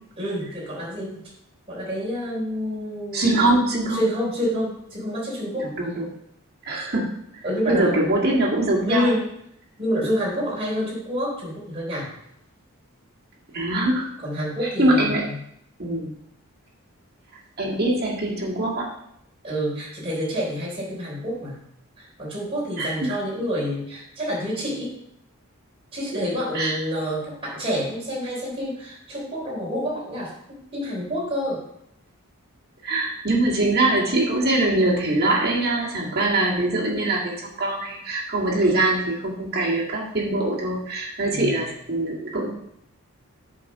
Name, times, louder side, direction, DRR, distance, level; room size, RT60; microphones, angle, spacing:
voice 1, 0.2-1.2 1.7-3.6 3.9-5.7 7.4-8.1 8.9-9.2 9.8-12.1 14.2-15.4 19.4-21.6 22.0-24.9 25.9-31.6 41.3-41.6, equal, 25° right, -5 dB, 3.6 m, -28 dB
voice 2, 3.1-4.0 5.6-6.1 6.7-7.2 7.7-9.1 13.5-14.1 14.6-15.2 15.8-16.1 17.6-18.9 22.8-23.2 26.5-26.8 32.8-42.5, right 2 dB, 45° right, -4 dB, 1.9 m, -23 dB
8.2 x 4.3 x 6.0 m, 0.74 s
head